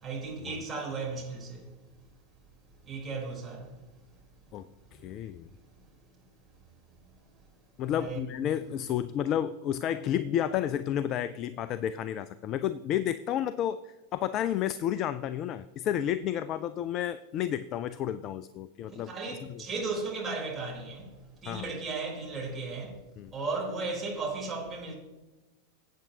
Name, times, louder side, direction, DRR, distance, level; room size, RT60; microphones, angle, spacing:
voice 1, 0.0-2.1 2.7-4.1 5.0-5.1 6.1-6.3 6.6-7.1 8.0-8.2 18.9-23.0 23.3-25.0, right 3 dB, 20° right, 3.8 m, -36 dB
voice 2, 4.5-5.5 7.8-19.6 21.5-21.7 23.2-23.3, left 10 dB, 35° left, 0.4 m, -31 dB
18.0 x 8.5 x 2.8 m
figure-of-eight pair, 90°, 0 cm